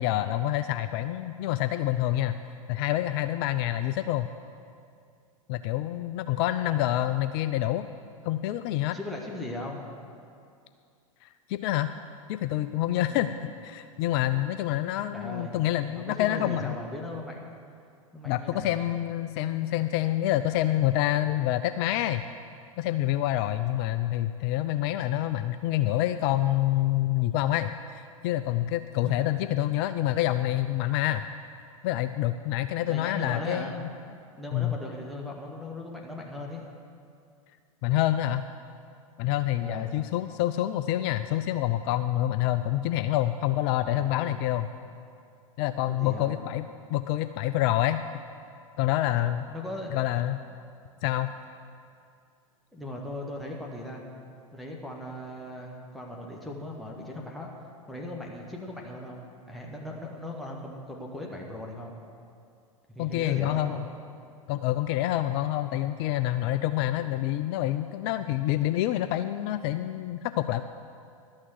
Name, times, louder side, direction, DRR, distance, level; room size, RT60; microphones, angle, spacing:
voice 1, 0.0-2.4 2.7-4.3 5.5-7.9 8.2-9.0 11.2-11.9 12.3-13.3 13.6-16.8 18.2-22.2 22.8-31.3 31.8-33.9 34.5-34.8 37.8-38.5 39.2-44.7 45.6-46.6 46.9-48.0 48.8-49.5 49.9-50.4 51.0-51.3 63.0-63.9 64.5-70.6, left 13 dB, 45° left, 11 dB, 0.4 m, -27 dB
voice 2, 8.9-9.8 13.1-13.3 15.1-15.6 16.0-17.5 18.1-18.8 29.0-29.3 32.9-33.7 34.1-36.7 39.6-39.9 43.8-44.5 45.9-46.4 49.5-50.1 52.7-54.0 54.5-57.5 57.9-61.9 62.9-63.8, left 1 dB, ahead, -2 dB, 1.4 m, -38 dB
12.0 x 6.5 x 7.6 m, 2.4 s
hypercardioid pair, 95°, 18 cm